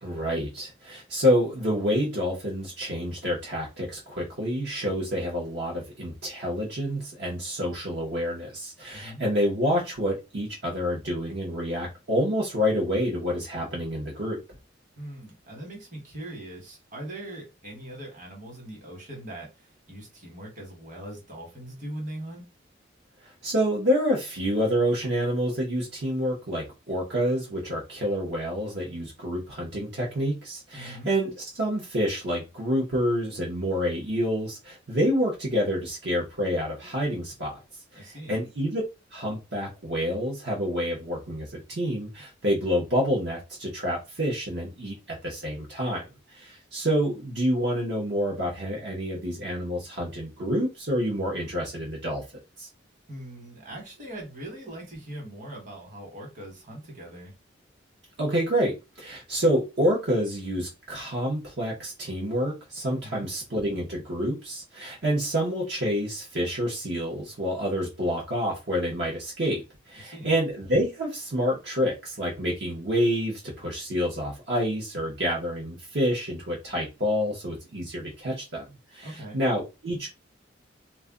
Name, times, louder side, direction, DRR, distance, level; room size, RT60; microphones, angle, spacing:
voice 1, 0.0-14.4 23.2-37.6 37.9-38.8 39.1-46.0 46.3-52.2 52.6-52.7 58.2-69.6 69.9-78.7 78.9-80.1, equal, 60° right, 0.9 m, -28 dB
voice 2, 15.0-22.4 30.7-31.1 38.0-38.4 53.1-57.3 63.0-63.3 70.0-70.3 79.0-79.4, right 1 dB, 40° right, 1.3 m, -41 dB
2.4 x 2.2 x 3.6 m
head